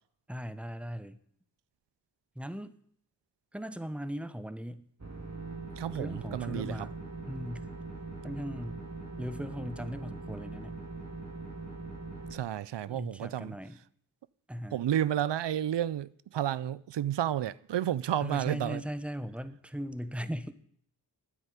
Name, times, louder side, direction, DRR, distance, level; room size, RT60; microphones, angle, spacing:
voice 1, 0.3-1.2 2.4-2.7 3.5-4.9 5.9-7.0 7.3-7.7 8.2-8.8 9.2-10.8 12.8-13.8 14.5-14.9 18.2-20.5, equal, 5° right, 1.0 m, -38 dB
sound 1, 5.0-12.3, right 3 dB, 40° right, 2.8 m, -42 dB
voice 2, 5.8-6.9 12.3-13.6 14.7-18.8, right 11 dB, 85° right, 0.5 m, -31 dB
10.0 x 9.0 x 9.7 m
wide cardioid pair, 55°, 41 cm